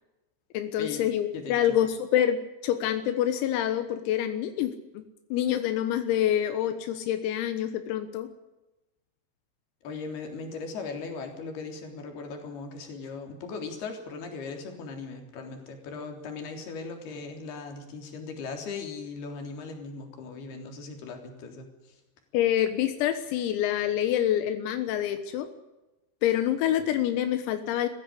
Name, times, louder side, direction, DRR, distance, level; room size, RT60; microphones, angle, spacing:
voice 1, 0.5-5.0 5.3-8.3 22.3-25.5 26.2-27.9, left 11 dB, 85° left, 9 dB, 4.1 m, -26 dB
voice 2, 1.3-1.8 9.8-21.7, left 4 dB, 50° left, 4 dB, 5.2 m, -38 dB
22.5 x 15.5 x 9.9 m, 1.0 s
omnidirectional pair, 6.0 m